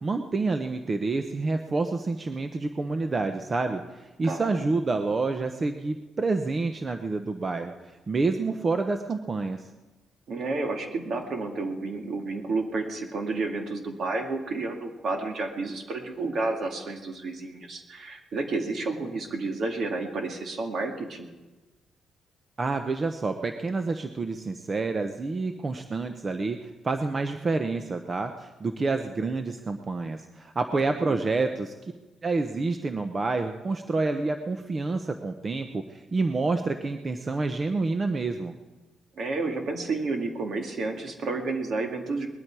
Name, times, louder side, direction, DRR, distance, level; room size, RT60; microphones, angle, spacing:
voice 1, 0.0-9.7 22.6-31.7 32.2-38.6, right 3 dB, 30° right, 7 dB, 0.8 m, -28 dB
voice 2, 4.2-4.6 10.3-21.3 31.0-31.2 39.2-42.3, right 3 dB, 60° right, 3 dB, 2.2 m, -31 dB
20.0 x 12.0 x 4.8 m, 1.2 s
cardioid pair, 105°, 0 cm